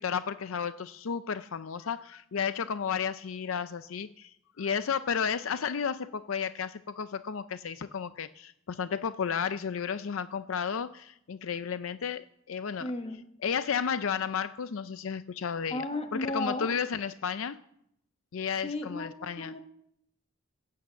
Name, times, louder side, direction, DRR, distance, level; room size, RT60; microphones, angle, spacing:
voice 1, 0.0-12.9 13.4-15.8 16.1-17.6 18.3-19.5, left 6 dB, 70° left, 13 dB, 0.5 m, -33 dB
voice 2, 12.8-13.2 15.7-16.7 18.6-19.6, left 2 dB, 30° left, 6 dB, 1.5 m, -34 dB
17.0 x 8.6 x 7.0 m, 0.73 s
head